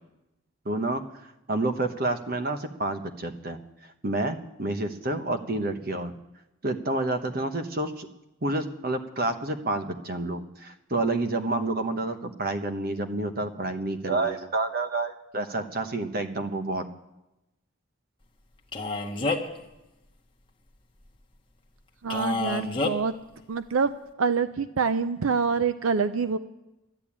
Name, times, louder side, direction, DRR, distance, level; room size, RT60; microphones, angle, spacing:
voice 1, 0.6-6.1 6.6-8.1 8.4-16.9, right 2 dB, 45° right, 7 dB, 1.0 m, -29 dB
Male speech man speaking, 18.7-19.6 22.1-22.9, left 3 dB, 25° left, 1.1 m, -28 dB
voice 2, 22.0-23.1 23.5-23.9 24.2-26.4, right 5 dB, 85° right, 12 dB, 0.5 m, -26 dB
12.0 x 10.5 x 8.6 m, 0.95 s
head